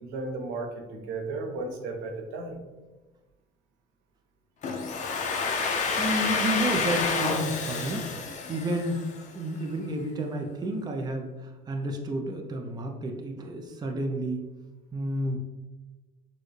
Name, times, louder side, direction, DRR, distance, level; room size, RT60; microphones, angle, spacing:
voice 1, 0.0-2.6, right 3 dB, 85° right, 2 dB, 0.9 m, -34 dB
Domestic sounds home sounds, 4.6-9.4, left 4 dB, 40° left, 0.6 m, -29 dB
voice 2, 5.7-8.1 8.5-9.0 9.3-14.5 14.9-15.4, right 1 dB, 20° right, 3 dB, 0.5 m, -31 dB
6.3 x 2.2 x 3.1 m, 1.2 s
cardioid pair, 125°, 19 cm